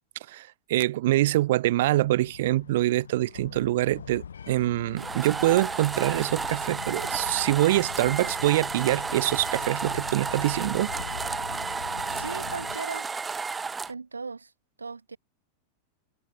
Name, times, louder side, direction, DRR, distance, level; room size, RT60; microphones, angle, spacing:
voice 1, 0.3-10.9, right 16 dB, 55° right, 0.4 m, -25 dB
sound 1, 1.8-12.8, left 7 dB, 70° left, 4.5 m, -42 dB
sound 2, 5.0-13.9, right 4 dB, 15° right, 1.8 m, -32 dB
voice 2, 12.1-13.1 13.9-14.5 14.8-15.2, right 4 dB, 75° right, 4.6 m, -37 dB
figure-of-eight pair, 90°, 0 cm